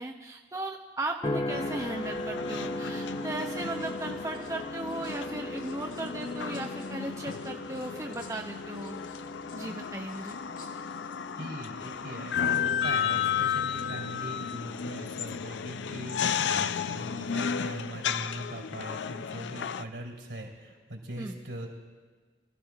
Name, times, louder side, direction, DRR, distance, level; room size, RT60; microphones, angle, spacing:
voice 1, 0.0-9.1 9.5-10.4 21.2-21.4, right 2 dB, 15° right, 2 dB, 0.6 m, -37 dB
sound 1, 1.2-15.7 16.2-16.7, left 1 dB, 30° left, 0.8 m, -40 dB
sound 2, 1.5-19.8, left 8 dB, 80° left, 0.4 m, -33 dB
sound 3, 3.4-5.2 5.5-11.4 11.7-12.0, left 3 dB, 45° left, 2.2 m, -58 dB
voice 2, 11.4-21.7, right 1 dB, 80° right, 0 dB, 3.3 m, -41 dB
25.0 x 14.0 x 2.4 m, 1.4 s
head